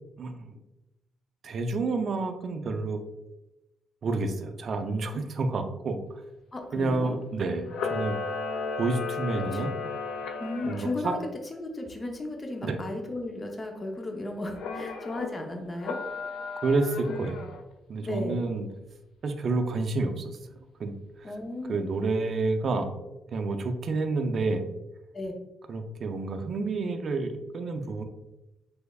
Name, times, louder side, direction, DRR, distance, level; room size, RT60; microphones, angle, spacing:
voice 1, 1.4-3.0 4.0-6.0 6.7-8.2 8.8-9.7 10.6-11.1 12.6-12.8 16.6-17.4 17.9-18.7 19.2-20.9 21.7-22.9 23.3-24.6 25.7-28.0, right 3 dB, 50° right, 7 dB, 0.4 m, -29 dB
voice 2, 6.5-7.2 9.3-9.6 10.4-11.2 11.5-16.0 18.0-18.5 21.2-21.9 25.1-25.3, left 2 dB, 25° left, 2 dB, 0.6 m, -35 dB
Camera, 7.7-11.0 14.5-15.3 15.8-17.6, left 4 dB, 80° left, 0.4 m, -34 dB
3.3 x 3.2 x 2.3 m, 0.97 s
cardioid pair, 90°, 0 cm